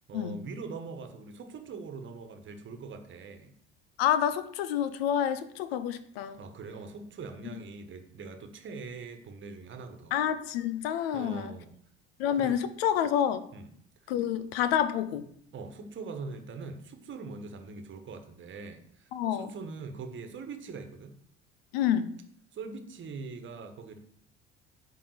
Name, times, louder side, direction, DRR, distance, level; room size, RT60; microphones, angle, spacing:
voice 1, 0.1-3.5 6.4-10.2 11.1-11.7 12.4-12.6 13.5-13.7 15.5-21.1 22.5-24.0, right 4 dB, 35° right, 7 dB, 1.4 m, -42 dB
voice 2, 4.0-6.4 10.1-11.5 12.2-13.5 14.1-15.3 19.1-19.5 21.7-22.1, left 10 dB, 65° left, 14 dB, 0.7 m, -28 dB
9.2 x 3.8 x 6.6 m, 0.67 s
figure-of-eight pair, 60°, 33 cm